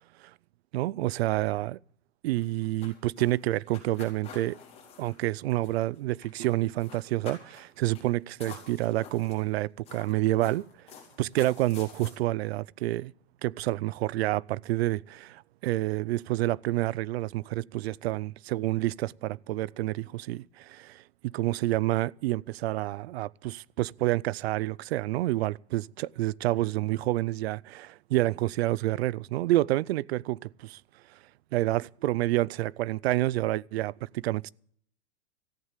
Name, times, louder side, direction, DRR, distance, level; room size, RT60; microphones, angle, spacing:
voice 1, 0.7-1.8 2.2-4.6 5.0-10.6 11.2-13.1 13.4-21.0 21.3-30.8 31.5-34.5, right 16 dB, 70° right, 0.5 m, -28 dB
sound 1, 2.3-6.0 6.2-6.5 6.8-7.7 8.0-8.1 8.4-9.5 9.9-12.1, left 7 dB, 20° left, 4.2 m, -48 dB
14.5 x 8.1 x 8.8 m
supercardioid pair, 160°, 33 cm